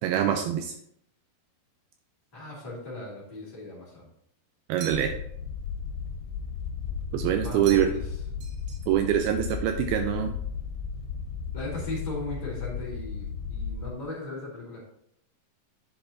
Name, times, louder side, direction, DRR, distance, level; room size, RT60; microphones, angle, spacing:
voice 1, 0.0-0.7 4.7-5.1 7.1-7.9 8.9-10.3, right 10 dB, 85° right, 5 dB, 2.2 m, -24 dB
voice 2, 2.3-4.1 7.4-8.0 11.5-14.8, left 2 dB, 10° left, -8 dB, 2.6 m, -37 dB
sound 1, 4.8-5.4 7.6-8.1 8.4-9.2, right 7 dB, 70° right, 2.5 m, -44 dB
sound 2, 4.9-13.9, left 6 dB, 85° left, 3.0 m, -35 dB
10.5 x 7.7 x 2.9 m, 0.70 s
omnidirectional pair, 5.0 m